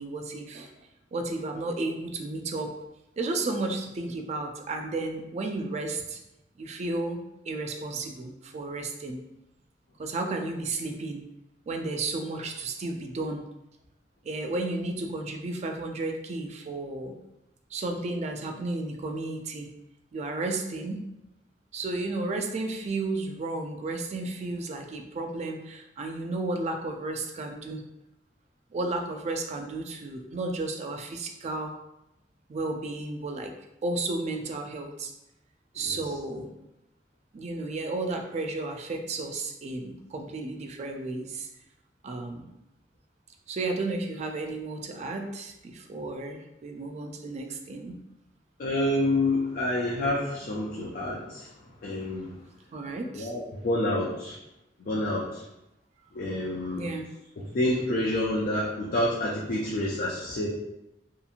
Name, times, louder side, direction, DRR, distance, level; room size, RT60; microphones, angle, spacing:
voice 1, 0.0-2.7 3.2-6.2 6.6-9.2 10.0-11.2 11.7-13.4 14.2-17.2 17.7-19.7 20.1-21.0 21.7-27.8 28.7-31.7 32.5-33.5 33.8-35.1 35.7-36.5 37.3-41.5 42.0-42.5 43.5-48.0 52.7-53.3 56.7-57.1, right 2 dB, 40° right, 4 dB, 0.3 m, -33 dB
voice 2, 48.6-52.4 53.1-54.4 54.9-55.5 56.1-56.9 57.4-60.5, left 1 dB, 55° left, -4 dB, 0.4 m, -28 dB
2.8 x 2.5 x 2.4 m, 0.89 s
head